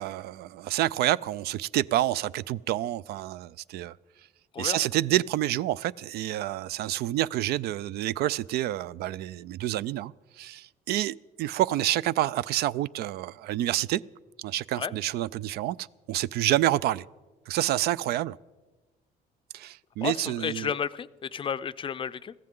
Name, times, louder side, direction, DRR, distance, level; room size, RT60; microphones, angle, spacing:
voice 1, 0.0-3.9 4.6-14.0 14.4-17.0 17.5-18.4 19.5-20.7, right 14 dB, 70° right, 0.4 m, -28 dB
voice 2, 20.0-22.3, left 7 dB, 30° left, 0.4 m, -32 dB
21.5 x 15.0 x 3.7 m
cardioid pair, 110°, 17 cm